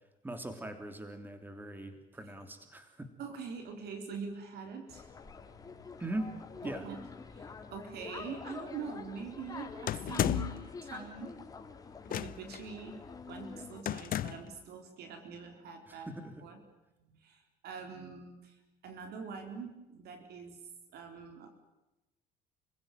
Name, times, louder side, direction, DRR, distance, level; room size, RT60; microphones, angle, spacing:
voice 1, 0.2-3.1 6.0-6.4 6.6-6.9 15.9-16.4, right 1 dB, 10° right, 7 dB, 3.1 m, -40 dB
voice 2, 3.2-5.1 6.6-7.0 7.3-11.4 12.1-13.0 13.3-16.1 16.4-16.6 17.0-20.6 20.9-21.5, right 6 dB, 70° right, 5 dB, 4.0 m, -44 dB
sound 1, 4.9-13.8, left 5 dB, 20° left, 4.0 m, -47 dB
sound 2, 9.9-10.7 12.1-12.6 13.9-14.6, left 12 dB, 55° left, 0.9 m, -33 dB
29.5 x 16.0 x 9.1 m, 0.98 s
cardioid pair, 110°, 17 cm